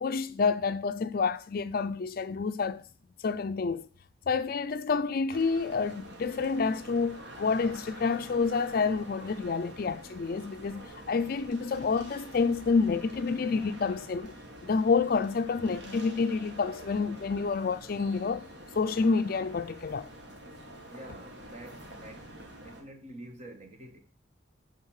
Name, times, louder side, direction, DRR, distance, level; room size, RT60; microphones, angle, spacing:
voice 1, 0.0-2.8 3.2-3.9 4.3-14.3 14.6-18.5 18.8-20.1, left 4 dB, 50° left, 0.4 m, -28 dB
sound 1, 5.3-22.8, right 1 dB, 60° right, 1.7 m, -47 dB
voice 2, 20.9-22.3 22.6-24.0, right 1 dB, 35° right, 1.2 m, -47 dB
8.7 x 4.0 x 6.4 m
head